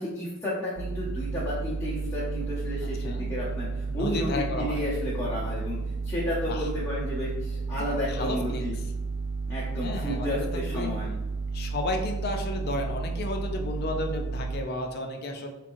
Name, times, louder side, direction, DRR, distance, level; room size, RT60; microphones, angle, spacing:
voice 1, 0.0-5.8 6.0-8.7 9.5-11.1, left 1 dB, 15° left, -10 dB, 0.7 m, -32 dB
sound 1, 0.8-14.6, right 4 dB, 85° right, 0.3 m, -32 dB
voice 2, 3.9-4.8 6.5-6.6 8.1-8.7 9.8-10.9 11.5-15.5, left 2 dB, 45° left, 3 dB, 0.4 m, -32 dB
3.5 x 3.1 x 2.5 m, 0.98 s
head